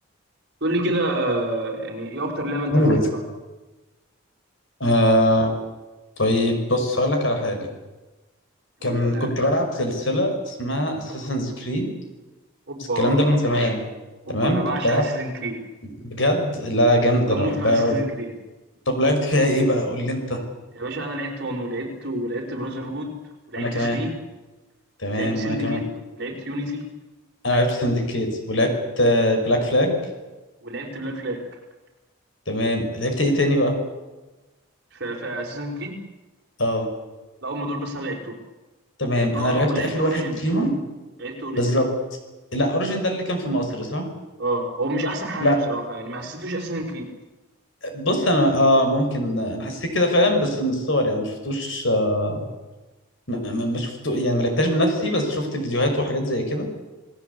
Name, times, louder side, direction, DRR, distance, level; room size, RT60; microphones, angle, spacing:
voice 1, 0.6-2.9 8.8-9.3 12.7-13.4 14.3-15.6 17.3-18.3 20.7-23.1 23.5-24.1 25.1-25.8 26.1-26.8 30.6-31.4 34.9-35.9 37.4-38.4 39.3-40.4 41.2-41.7 44.4-47.1, right 1 dB, 50° right, 1 dB, 5.3 m, -29 dB
voice 2, 4.8-5.5 6.2-7.7 8.8-11.9 13.0-13.8 14.3-15.0 16.0-18.0 18.9-20.4 23.6-24.0 25.0-25.8 27.4-30.0 32.5-33.8 36.6-36.9 39.0-40.7 41.6-41.9 42.5-44.1 45.4-45.6 47.8-52.5 53.3-56.7, left 1 dB, 60° left, 4 dB, 5.9 m, -22 dB
29.0 x 18.5 x 8.4 m, 1.1 s
head